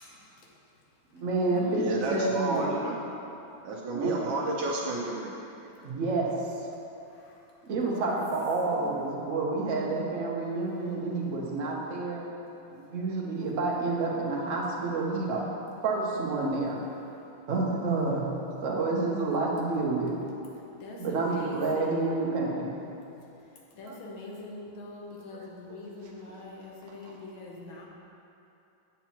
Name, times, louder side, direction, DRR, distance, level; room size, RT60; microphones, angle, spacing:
voice 1, 0.0-0.5 0.9-2.4 6.7-7.5 7.8-8.2 8.6-8.9 10.5-10.9 11.2-11.3 17.0-17.3 20.8-22.5 23.2-27.9, left 2 dB, 75° left, -2 dB, 1.8 m, -44 dB
voice 2, 1.1-2.7 3.9-4.1 5.6-6.3 7.6-12.2 12.7-16.8 17.2-18.3 18.6-20.2 21.0-22.7 23.8-24.0 25.7-25.8, right 3 dB, 50° right, -3 dB, 1.1 m, -29 dB
voice 3, 1.8-2.9 3.6-5.3, right 2 dB, 75° right, -4 dB, 1.4 m, -31 dB
8.3 x 7.1 x 3.0 m, 2.8 s
omnidirectional pair, 2.3 m